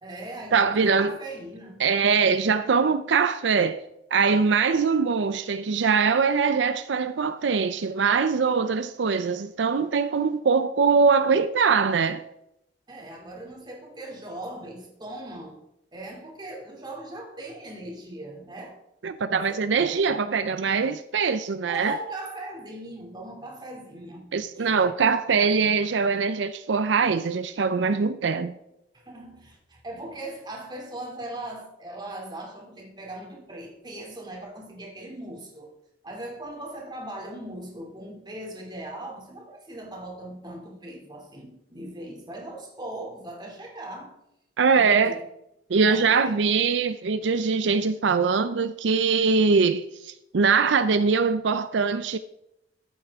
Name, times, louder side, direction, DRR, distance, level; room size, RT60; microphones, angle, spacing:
voice 1, 0.0-1.8 12.9-15.6 15.9-18.8 19.3-20.0 21.7-25.1 28.9-35.7 36.0-44.1 44.7-45.2 45.8-46.5, right 1 dB, 25° right, 2.7 m, -39 dB
voice 2, 0.5-1.1 1.8-3.8 4.1-12.2 19.0-22.0 24.3-28.6 44.6-45.2 45.7-52.2, right 5 dB, 85° right, 0.5 m, -22 dB
13.5 x 8.3 x 3.6 m
head